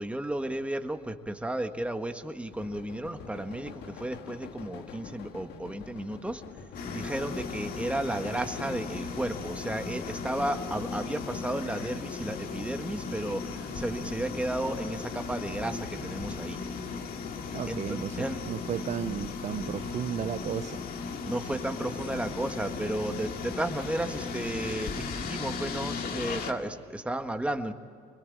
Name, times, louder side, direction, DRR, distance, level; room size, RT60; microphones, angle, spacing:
voice 1, 0.0-6.4 6.9-16.6 17.7-17.8 18.2-18.4 21.3-27.7, right 1 dB, 5° right, 6 dB, 1.5 m, -33 dB
sound 1, 2.5-11.5, left 6 dB, 80° left, 1.8 m, -46 dB
sound 2, 6.7-26.5, left 4 dB, 60° left, 2.3 m, -36 dB
voice 2, 17.5-20.9, right 9 dB, 45° right, 11 dB, 0.6 m, -34 dB
26.5 x 21.5 x 8.7 m, 2.3 s
cardioid pair, 110°, 17 cm